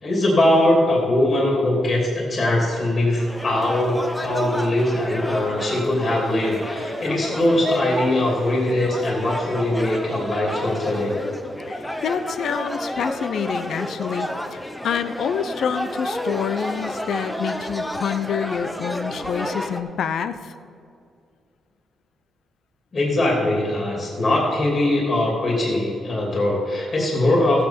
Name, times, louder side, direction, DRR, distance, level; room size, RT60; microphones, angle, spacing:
voice 1, 0.0-11.2 22.9-27.7, left 1 dB, 35° left, -3 dB, 2.8 m, -21 dB
sound 1, 3.2-19.8, equal, 5° left, 0.8 m, -31 dB
voice 2, 11.7-20.4, left 7 dB, 65° left, 11 dB, 0.6 m, -27 dB
16.0 x 7.9 x 4.3 m, 2.4 s
cardioid pair, 135°, 0 cm